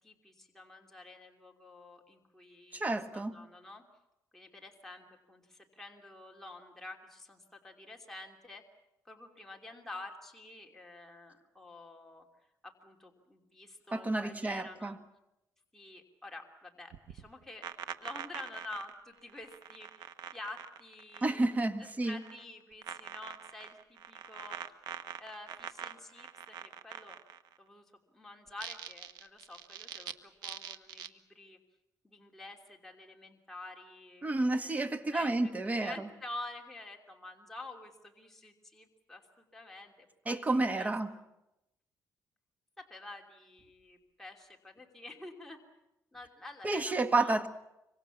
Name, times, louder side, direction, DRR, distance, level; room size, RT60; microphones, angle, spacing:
voice 1, 0.0-3.8 4.3-8.6 9.0-12.3 12.6-15.0 15.7-17.7 18.0-21.5 21.8-24.6 25.2-27.2 27.6-27.8 28.1-31.6 32.0-34.3 34.6-35.5 35.8-40.9 42.8-45.6 46.1-47.4, left 2 dB, 5° left, 3.0 m, -49 dB
voice 2, 2.7-3.3 13.9-15.0 21.2-22.2 34.2-36.1 40.2-41.1 46.6-47.5, right 2 dB, 20° right, 1.6 m, -30 dB
sound 1, 16.9-21.6 21.8-22.4 22.8-27.6 28.5-30.1 30.4-31.1, right 9 dB, 80° right, 1.3 m, -44 dB
25.5 x 24.5 x 7.3 m
cardioid pair, 110°, 7 cm